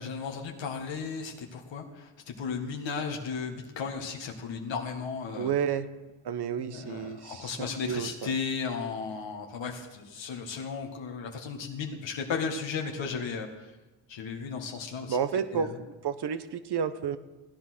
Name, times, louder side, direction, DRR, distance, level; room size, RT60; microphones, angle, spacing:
voice 1, 0.0-5.5 6.6-13.7 14.1-15.2 15.5-15.7, left 5 dB, 65° left, 1 dB, 1.9 m, -35 dB
voice 2, 5.4-5.9 6.2-8.3 15.1-17.2, right 7 dB, 55° right, 12 dB, 1.2 m, -31 dB
16.5 x 9.6 x 6.2 m, 1.1 s
supercardioid pair, 70°, 48 cm